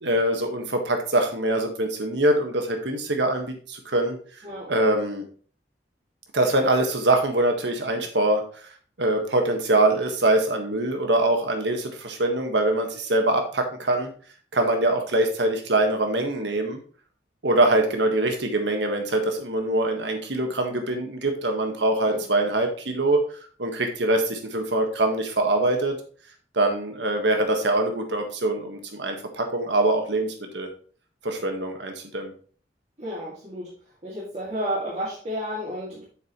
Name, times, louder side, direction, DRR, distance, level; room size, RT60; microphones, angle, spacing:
voice 1, 0.0-4.2 4.7-5.2 6.3-8.4 9.0-14.1 14.5-16.8 17.4-23.2 23.6-26.0 26.5-30.7 31.2-32.3, right 2 dB, 75° right, 4 dB, 1.6 m, -23 dB
voice 2, 33.0-33.7 34.0-36.0, equal, 35° right, -8 dB, 2.4 m, -31 dB
8.1 x 7.0 x 3.1 m, 0.42 s
head